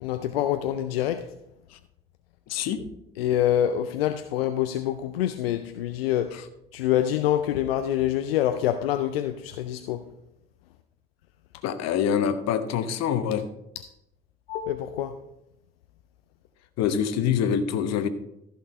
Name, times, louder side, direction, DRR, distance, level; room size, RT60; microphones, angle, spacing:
voice 1, 0.0-1.3 3.2-6.4 6.7-10.0 14.5-15.1, left 11 dB, 85° left, 0.5 m, -26 dB
voice 2, 2.5-2.8 6.3-6.5 11.6-13.4 16.8-18.1, left 8 dB, 60° left, 1.0 m, -25 dB
14.5 x 5.7 x 4.2 m
hypercardioid pair, 50°, 29 cm